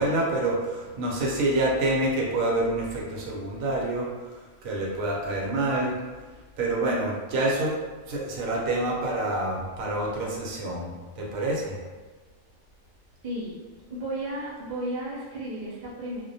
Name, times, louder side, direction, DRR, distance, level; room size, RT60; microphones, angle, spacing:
voice 1, 0.0-4.1 4.6-5.9 6.6-7.7 8.1-11.8, right 2 dB, 90° right, -3 dB, 1.0 m, -27 dB
voice 2, 13.2-13.6 13.9-16.2, right 1 dB, 60° right, -8 dB, 0.4 m, -33 dB
2.4 x 2.1 x 2.6 m, 1.4 s
omnidirectional pair, 1.4 m